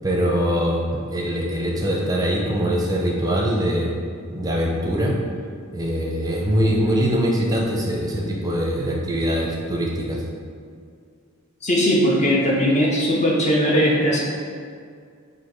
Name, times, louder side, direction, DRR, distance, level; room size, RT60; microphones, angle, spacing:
voice 1, 0.0-0.8 1.1-3.9 4.3-5.1 5.7-10.2, equal, 15° right, -2 dB, 0.5 m, -22 dB
voice 2, 11.6-14.2, equal, 35° left, -3 dB, 0.6 m, -19 dB
4.4 x 2.7 x 4.4 m, 2.2 s
head